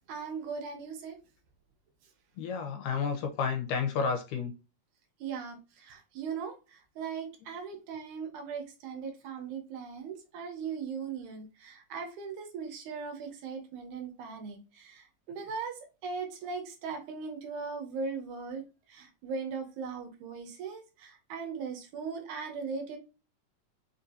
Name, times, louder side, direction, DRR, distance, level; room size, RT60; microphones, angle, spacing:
voice 1, 0.1-1.2 5.2-18.6 18.9-23.0, right 5 dB, 75° right, 2.2 m, -39 dB
voice 2, 2.4-4.5, left 5 dB, 85° left, 2.5 m, -31 dB
5.4 x 2.7 x 2.6 m
omnidirectional pair, 3.7 m